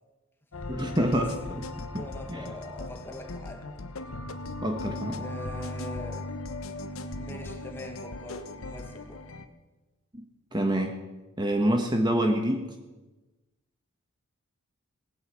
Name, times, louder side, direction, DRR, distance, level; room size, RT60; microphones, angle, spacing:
sound 1, 0.5-9.4, left 2 dB, 70° left, 1.1 m, -38 dB
voice 1, 0.7-1.7 1.9-2.5 4.6-5.2 10.1-10.2 10.5-11.0 11.4-12.6, right 1 dB, 20° right, 3 dB, 1.4 m, -27 dB
voice 2, 2.0-3.7 5.2-6.3 7.2-9.2, left 1 dB, 10° left, 3 dB, 1.8 m, -42 dB
18.0 x 9.9 x 7.1 m, 1.2 s
head